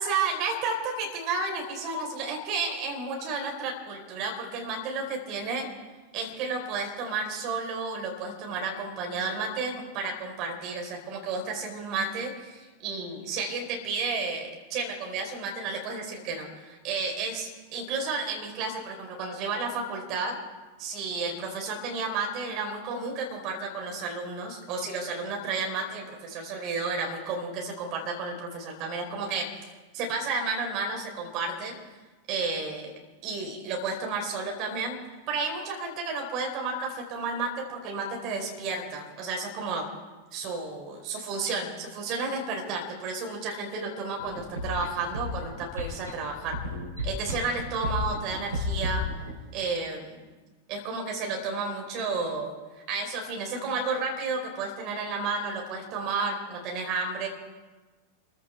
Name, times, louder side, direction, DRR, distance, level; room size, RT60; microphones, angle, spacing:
voice 1, 0.0-5.7 6.1-20.4 20.8-29.5 29.9-31.7 32.3-32.9 33.2-35.0 35.3-39.9 40.3-46.6 47.0-49.0 49.5-50.2 50.7-52.5 52.9-57.3, right 4 dB, 40° right, 2 dB, 3.9 m, -32 dB
sound 1, 44.2-49.3, left 1 dB, 80° right, 3.0 m, -33 dB
28.0 x 15.0 x 3.4 m, 1.2 s
figure-of-eight pair, 90°, 0 cm